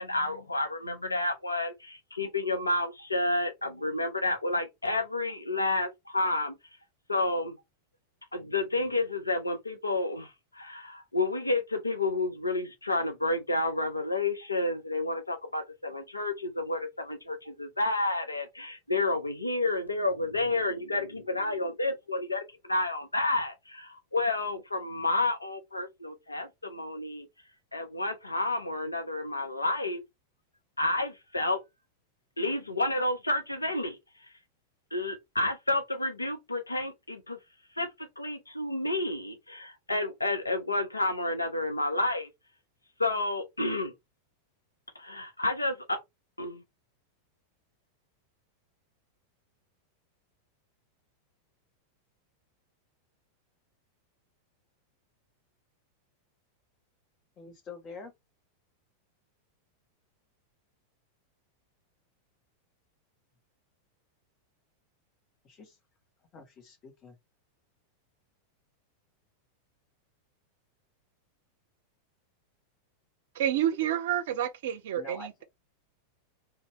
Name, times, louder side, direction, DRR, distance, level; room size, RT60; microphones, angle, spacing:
voice 1, 0.0-6.5 7.1-7.6 8.3-27.3 27.7-30.0 30.8-31.6 32.4-34.3 34.9-37.4 37.8-42.3 43.0-43.9 45.0-45.8 46.4-46.6, left 2 dB, 80° left, 0.6 m, -30 dB
voice 2, 57.4-58.1 65.4-65.8 66.3-67.2 74.9-75.4, left 4 dB, 30° left, 1.0 m, -46 dB
voice 3, 73.4-75.4, right 11 dB, 55° right, 0.5 m, -29 dB
2.7 x 2.2 x 3.0 m
figure-of-eight pair, 90°, 0 cm